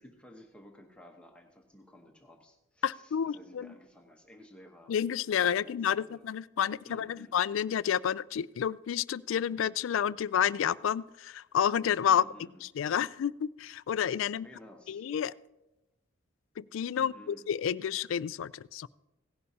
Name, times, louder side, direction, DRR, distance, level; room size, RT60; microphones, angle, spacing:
voice 1, 0.0-4.9 5.3-6.3 6.9-7.3 12.1-12.7 14.2-15.1 17.0-17.5, equal, 5° left, 2 dB, 1.0 m, -54 dB
voice 2, 2.8-3.7 4.9-12.2 12.6-14.5 14.9-15.3 16.6-18.9, left 8 dB, 75° left, 19 dB, 0.3 m, -30 dB
17.0 x 11.0 x 2.8 m, 0.98 s
head